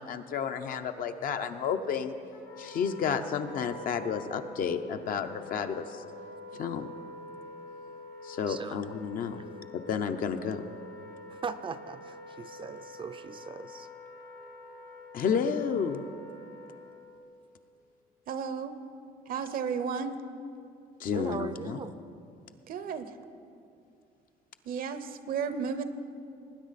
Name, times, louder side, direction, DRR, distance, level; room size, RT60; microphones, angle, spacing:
voice 1, 0.0-2.2 2.6-6.0 6.6-6.9 8.2-9.4 9.7-10.6 15.1-16.0 21.0-21.8, left 6 dB, 55° left, 7 dB, 0.7 m, -31 dB
Wind instrument woodwind instrument, 2.3-17.2, left 2 dB, 85° left, 1.5 m, -47 dB
voice 2, 8.5-8.8 11.3-13.9 21.1-21.9, right 5 dB, 30° right, 11 dB, 0.5 m, -39 dB
voice 3, 18.3-18.8 19.3-20.2 22.7-23.1 24.6-25.8, right 6 dB, 60° right, 11 dB, 0.8 m, -33 dB
19.5 x 9.5 x 4.1 m, 2.5 s
cardioid pair, 110°, 17 cm